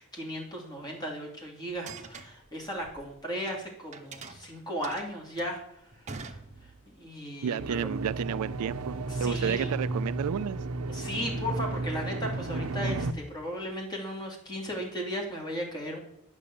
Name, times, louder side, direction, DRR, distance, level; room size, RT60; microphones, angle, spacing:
voice 1, 0.0-5.6 6.0-6.7 7.0-7.9 9.1-9.7 10.9-16.0, equal, 20° left, 0 dB, 2.7 m, -36 dB
sound 1, 1.7-3.6 3.9-7.0, right 4 dB, 30° right, 0.9 m, -45 dB
voice 2, 7.4-10.6, right 8 dB, 85° right, 18 dB, 0.4 m, -31 dB
sound 2, 7.6-13.1, right 2 dB, 65° right, 0.7 m, -33 dB
9.8 x 6.1 x 8.6 m, 0.75 s
head